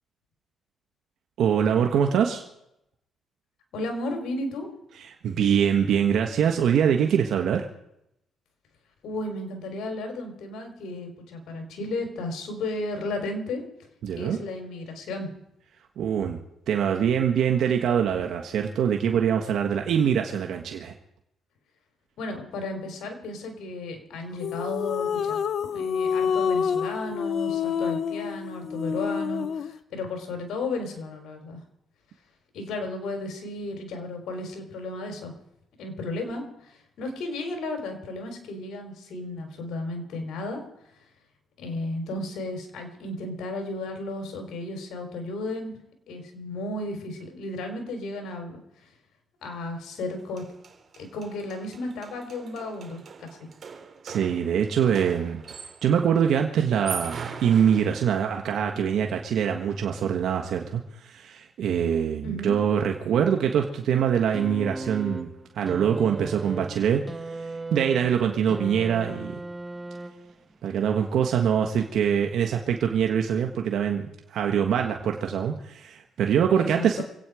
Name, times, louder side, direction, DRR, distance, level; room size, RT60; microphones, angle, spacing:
voice 1, 1.4-2.4 5.0-7.7 14.0-14.4 16.0-16.4 16.7-20.9 54.0-55.4 55.8-65.3 65.5-67.0 67.4-69.4 70.6-77.0, right 8 dB, 70° right, 3 dB, 1.4 m, -24 dB
voice 2, 3.7-4.7 9.0-13.6 14.2-15.3 19.7-19.8 22.2-25.4 25.7-31.6 32.5-35.3 35.8-40.6 41.6-45.7 46.1-48.6 49.4-50.4 51.0-53.3 62.2-62.5 76.6-77.0, left 2 dB, 75° left, 4 dB, 4.1 m, -34 dB
Haunting Descending Scale, 24.4-29.8, left 7 dB, 60° left, 0.8 m, -27 dB
sound 1, 50.0-50.1 50.4-56.0 56.7-58.5, right 6 dB, 50° right, 3.1 m, -41 dB
sound 2, 64.3-70.5 71.6-71.7, right 2 dB, 15° right, 1.6 m, -36 dB
26.5 x 9.1 x 5.0 m, 0.81 s
cardioid pair, 90°, 0 cm